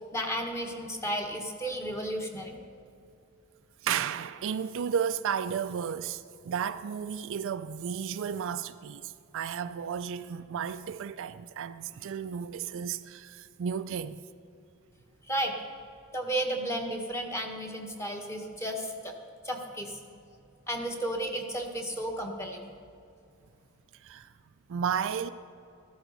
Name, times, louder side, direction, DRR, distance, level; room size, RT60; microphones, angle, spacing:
voice 1, 0.1-2.6 15.3-15.6 16.1-19.1 19.4-20.0 20.7-22.7, right 1 dB, 15° left, 1.3 m, -33 dB
voice 2, 3.8-14.2 24.0-24.3 24.7-25.3, right 7 dB, 60° right, 0.4 m, -33 dB
13.5 x 13.5 x 4.0 m
head